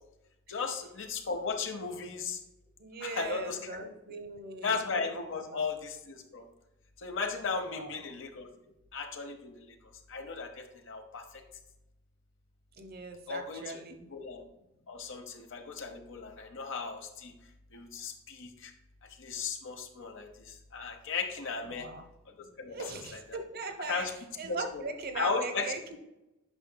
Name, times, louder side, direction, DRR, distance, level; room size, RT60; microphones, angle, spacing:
voice 1, 0.5-2.4 3.0-4.2 4.6-6.4 7.0-8.5 8.9-9.8 10.1-11.2 13.3-13.8 14.1-14.4 14.9-17.3 17.7-18.7 19.2-21.9 22.4-23.4 23.9-24.1 24.4-24.8 25.1-25.7, left 4 dB, 65° left, 5 dB, 0.8 m, -36 dB
voice 2, 2.8-4.8 5.3-5.6 7.6-8.0 12.8-14.1 21.6-22.0 22.7-24.1 24.4-26.0, right 3 dB, 50° right, 7 dB, 0.9 m, -40 dB
9.0 x 5.6 x 2.2 m, 0.94 s
head